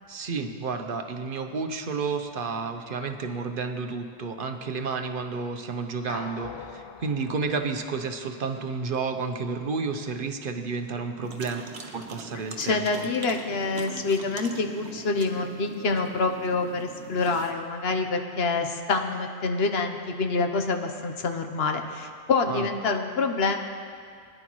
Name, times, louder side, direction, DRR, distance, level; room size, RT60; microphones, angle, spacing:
voice 1, 0.1-11.7 11.9-13.1 22.5-22.7, right 4 dB, 60° right, 6 dB, 0.9 m, -31 dB
sound 1, 6.1-8.6, left 6 dB, 45° left, 0.3 m, -42 dB
sound 2, 11.2-17.5, right 4 dB, 80° right, 1.2 m, -42 dB
voice 2, 12.6-23.6, left 3 dB, 80° left, 5 dB, 1.1 m, -26 dB
21.0 x 10.5 x 3.1 m, 2.2 s
omnidirectional pair, 1.0 m